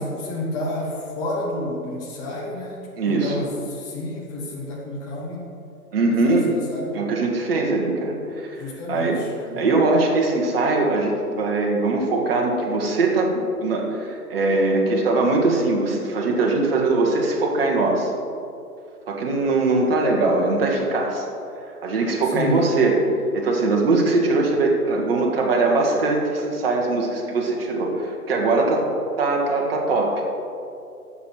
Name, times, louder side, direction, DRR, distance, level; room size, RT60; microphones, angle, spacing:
voice 1, 0.0-5.5 6.2-7.0 8.6-9.8 22.2-22.6, left 1 dB, 10° left, -4 dB, 0.7 m, -30 dB
voice 2, 3.0-3.4 5.9-6.5 6.9-8.6 8.9-9.2 9.6-18.1 19.1-21.3 21.8-23.0 23.3-28.8 29.2-30.2, right 3 dB, 40° right, 0 dB, 1.8 m, -21 dB
12.0 x 7.5 x 4.5 m, 2.6 s
figure-of-eight pair, 135°, 46 cm